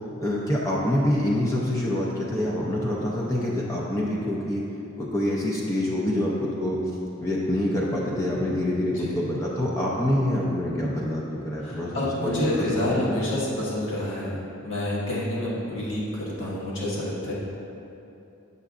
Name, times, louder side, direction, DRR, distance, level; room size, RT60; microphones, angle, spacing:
voice 1, 0.2-4.6 5.0-6.8 7.2-12.5 12.9-13.0, left 1 dB, 15° left, -5 dB, 0.5 m, -26 dB
voice 2, 11.6-17.3, left 1 dB, 70° left, -7 dB, 1.5 m, -28 dB
6.7 x 6.3 x 2.4 m, 2.8 s
head